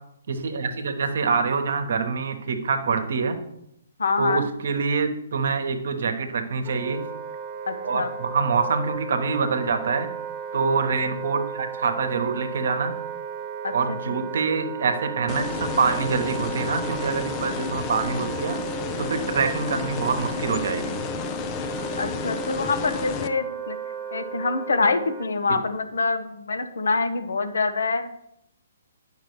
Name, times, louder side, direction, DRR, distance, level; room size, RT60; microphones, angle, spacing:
voice 1, 0.3-3.4 4.2-7.0 7.8-10.1 10.5-12.9 13.7-18.6 19.0-21.0, right 5 dB, 60° right, 7 dB, 1.2 m, -25 dB
voice 2, 4.0-4.5 7.7-8.1 13.6-14.2 22.0-23.8 24.1-28.3, left 3 dB, 70° left, 8 dB, 0.9 m, -26 dB
Wind instrument woodwind instrument, 6.6-25.3, right 7 dB, 25° right, 1.3 m, -35 dB
sound 1, 15.3-23.3, left 6 dB, 25° left, 0.5 m, -32 dB
10.0 x 5.8 x 3.1 m, 0.78 s
figure-of-eight pair, 130°, 0 cm